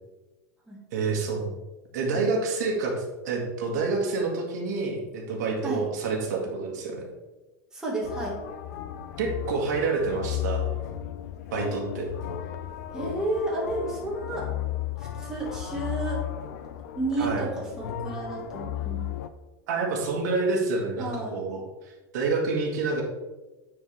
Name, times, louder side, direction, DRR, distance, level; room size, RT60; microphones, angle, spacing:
voice 1, 0.9-1.5 1.9-7.1 9.2-10.7 11.5-12.1 17.2-17.4 19.7-23.0, right 4 dB, 75° right, 0 dB, 1.7 m, -28 dB
voice 2, 7.7-8.4 12.9-14.5 15.0-16.3 16.9-19.1 21.0-21.3, right 2 dB, 5° right, -5 dB, 1.5 m, -31 dB
sound 1, 8.0-19.3, left 11 dB, 75° left, 0.5 m, -34 dB
9.1 x 4.6 x 3.3 m, 1.1 s
supercardioid pair, 165°, 9 cm